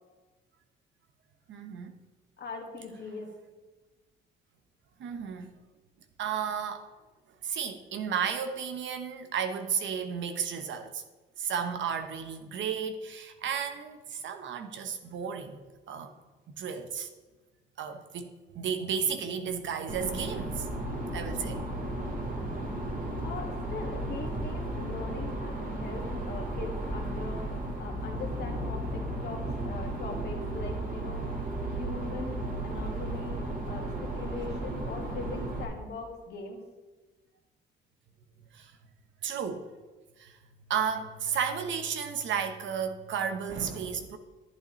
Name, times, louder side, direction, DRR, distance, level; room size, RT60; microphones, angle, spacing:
voice 1, 1.5-1.9 5.0-5.5 6.2-6.9 7.4-11.0 11.4-15.6 15.9-16.1 16.6-17.1 17.8-20.7 21.1-21.6 38.5-38.8 39.2-39.7 40.2-40.4 40.7-44.2, right 7 dB, 70° right, 7 dB, 1.0 m, -33 dB
voice 2, 2.4-3.3 23.2-32.4 32.6-36.6, left 4 dB, 55° left, 2 dB, 1.9 m, -41 dB
sound 1, 19.9-35.6, right 1 dB, 45° right, 1.9 m, -34 dB
11.0 x 8.8 x 3.2 m, 1.2 s
cardioid pair, 90°, 20 cm